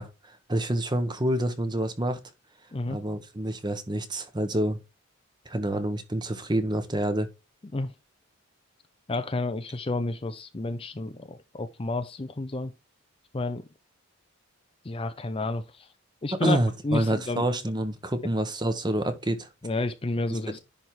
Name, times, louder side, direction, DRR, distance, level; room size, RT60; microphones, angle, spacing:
voice 1, 0.0-2.2 2.9-4.8 5.4-7.3 16.4-19.5 20.3-20.6, right 1 dB, 20° right, 1.0 m, -28 dB
voice 2, 9.1-12.7 13.3-13.6 14.8-15.9 16.2-16.6 16.8-17.4 19.6-20.6, left 2 dB, 25° left, 0.5 m, -30 dB
10.5 x 3.5 x 4.5 m
head